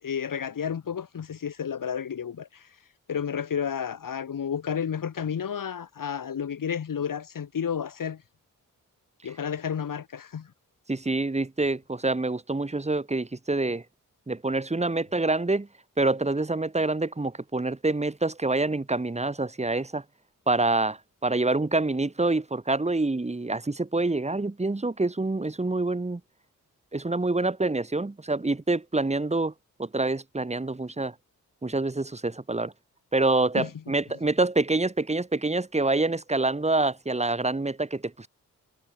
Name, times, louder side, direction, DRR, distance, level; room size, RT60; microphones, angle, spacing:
voice 1, 0.0-2.7 3.1-8.2 9.2-10.5 33.5-33.8, left 7 dB, 75° left, 6.8 m, -31 dB
voice 2, 10.9-13.8 14.3-15.7 16.0-20.0 20.5-26.2 26.9-29.5 29.8-31.1 31.6-32.7 33.1-38.3, right 2 dB, 20° right, 3.2 m, -26 dB
wide cardioid pair, 110°, 33 cm